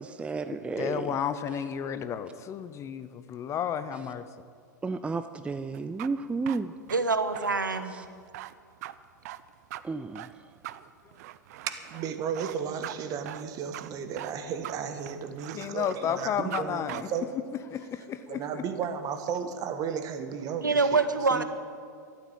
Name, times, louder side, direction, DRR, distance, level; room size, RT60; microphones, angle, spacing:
voice 1, 0.0-1.1 4.8-6.8 7.9-8.0 9.8-10.4, right 4 dB, 10° right, 10 dB, 0.5 m, -32 dB
voice 2, 0.8-4.3 15.5-17.1 17.7-18.6, left 8 dB, 30° left, 12 dB, 0.8 m, -32 dB
sound 1, 5.7-16.6 16.9-17.0, right 14 dB, 55° right, 0.6 m, -42 dB
voice 3, 6.9-8.0 20.6-21.4, right 4 dB, 90° right, 10 dB, 1.0 m, -25 dB
voice 4, 11.6-17.3 18.3-21.0 21.3-21.4, right 7 dB, 35° right, 9 dB, 1.5 m, -34 dB
13.5 x 12.0 x 7.6 m, 2.2 s
figure-of-eight pair, 95°, 10 cm